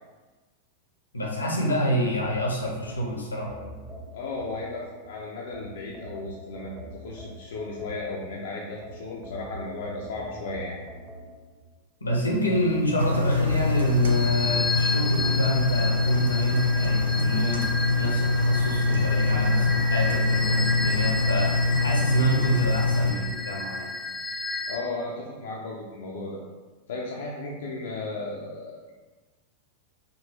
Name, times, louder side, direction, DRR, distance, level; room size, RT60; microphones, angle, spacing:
voice 1, 1.1-3.6 12.0-23.9, right 1 dB, 80° left, -2 dB, 0.9 m, -27 dB
sound 1, 2.2-5.0 5.5-8.3 8.8-11.6 12.1-13.7, equal, 10° right, 1.0 m, -43 dB
voice 2, 4.1-10.8 24.7-26.4 26.9-28.9, left 3 dB, 60° left, -3 dB, 0.6 m, -35 dB
Engine, 13.0-23.1, left 3 dB, 70° right, 0.5 m, -24 dB
sound 2, 13.6-24.8, left 2 dB, 15° left, 0.4 m, -32 dB
5.3 x 2.6 x 3.2 m, 1.3 s
figure-of-eight pair, 90°, 0 cm